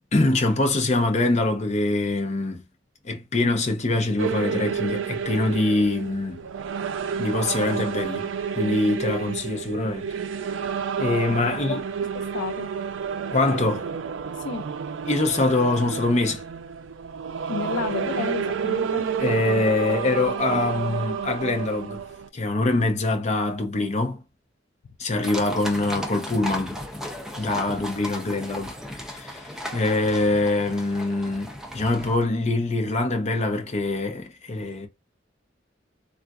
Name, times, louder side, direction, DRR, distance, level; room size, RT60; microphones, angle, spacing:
voice 1, 0.0-2.6 3.0-6.5 7.2-10.1 11.0-11.8 13.3-13.9 15.1-16.4 19.2-22.0 22.3-24.2 25.0-26.8 27.4-28.7 29.0-34.9, left 2 dB, 35° left, 0.7 m, -24 dB
sound 1, 4.2-22.3, right 7 dB, 80° right, 0.4 m, -30 dB
voice 2, 11.5-11.8 12.1-12.7 14.4-14.7 17.5-19.1, left 5 dB, 65° left, 0.4 m, -31 dB
sound 2, 25.2-32.2, equal, 5° right, 0.5 m, -35 dB
3.7 x 2.4 x 2.3 m
head